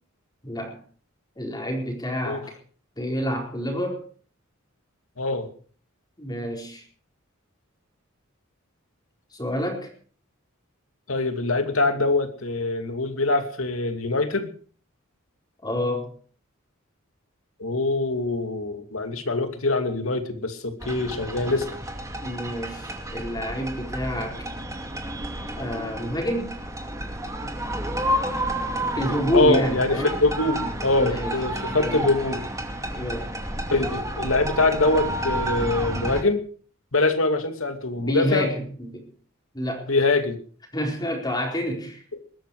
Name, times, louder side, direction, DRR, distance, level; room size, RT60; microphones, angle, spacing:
voice 1, 0.4-0.8 1.4-2.5 3.0-4.0 6.2-6.8 9.3-9.9 15.6-16.1 22.2-24.5 25.6-26.6 28.9-30.1 31.0-31.4 31.7-32.1 32.9-33.3 38.0-39.0 39.5-39.9 40.7-42.0, equal, 20° left, 1 dB, 4.4 m, -28 dB
voice 2, 5.2-5.5 11.1-14.5 17.6-21.7 29.3-32.5 33.7-36.4 36.9-38.5 39.9-40.4, left 2 dB, 75° left, 7 dB, 2.6 m, -24 dB
sound 1, 20.8-36.2, right 1 dB, 15° right, 2.5 m, -31 dB
20.5 x 13.0 x 4.9 m, 0.43 s
head